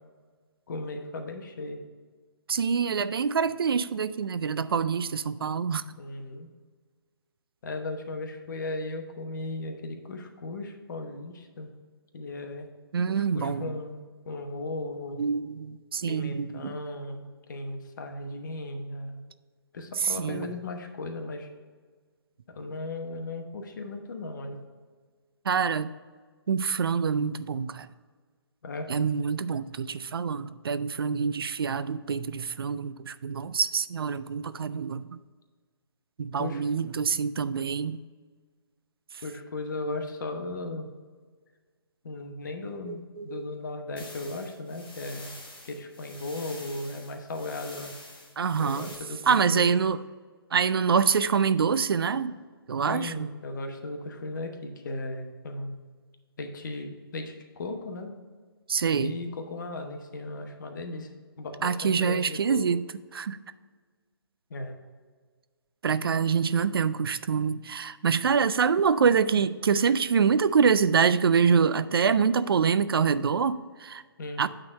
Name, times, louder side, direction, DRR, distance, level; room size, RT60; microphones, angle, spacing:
voice 1, 0.7-1.8 6.0-6.5 7.6-11.7 12.1-12.7 13.1-15.2 16.1-19.2 19.7-21.5 22.5-24.6 28.6-28.9 36.4-36.6 39.2-40.9 42.0-45.4 45.6-47.9 48.6-49.7 52.9-55.8 56.4-58.1 59.0-61.1 61.4-62.6 64.5-64.8 74.2-74.4, left 2 dB, 50° left, 5 dB, 1.1 m, -36 dB
voice 2, 2.5-6.0 12.9-13.7 15.2-16.8 20.0-20.5 25.5-25.9 26.5-27.9 28.9-35.2 36.2-38.0 42.6-43.5 48.4-48.9 49.3-50.0 50.5-52.4 52.7-53.3 58.7-59.1 61.6-62.8 63.1-63.4 65.8-74.0 74.4-74.5, right 6 dB, 65° right, 14 dB, 0.4 m, -25 dB
sound 1, 44.0-49.0, left 2 dB, 10° left, 1.1 m, -47 dB
8.7 x 3.8 x 5.3 m, 1.5 s
figure-of-eight pair, 145°, 13 cm